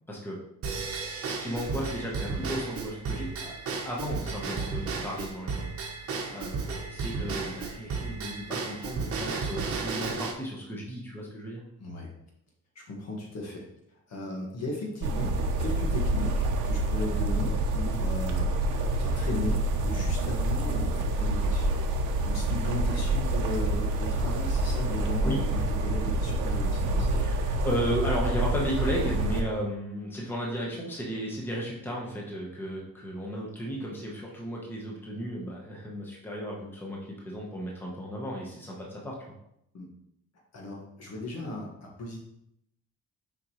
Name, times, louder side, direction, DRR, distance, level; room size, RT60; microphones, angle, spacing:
voice 1, 0.1-0.4 1.2-3.5 3.8-11.6 25.2-25.4 27.2-39.3, equal, 5° left, -3 dB, 1.0 m, -34 dB
Drum kit / Drum / Bell, 0.6-10.3, right 4 dB, 50° right, 1.0 m, -33 dB
voice 2, 11.8-12.1 12.8-21.7 22.2-27.2 39.7-39.9 40.5-42.2, left 2 dB, 60° left, -1 dB, 1.8 m, -37 dB
sound 1, 15.0-29.4, right 2 dB, 85° right, 0.8 m, -27 dB
6.9 x 5.1 x 3.1 m, 0.77 s
cardioid pair, 155°, 30 cm